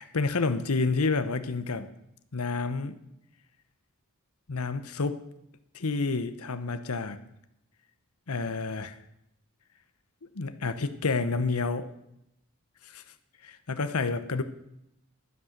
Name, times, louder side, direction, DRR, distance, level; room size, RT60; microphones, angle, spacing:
voice 1, 0.0-1.9 2.3-3.0 4.5-5.2 5.7-7.2 8.3-9.0 10.3-11.9 12.8-13.0 13.4-14.4, left 3 dB, 85° left, 10 dB, 0.9 m, -29 dB
12.0 x 9.8 x 6.6 m, 0.80 s
head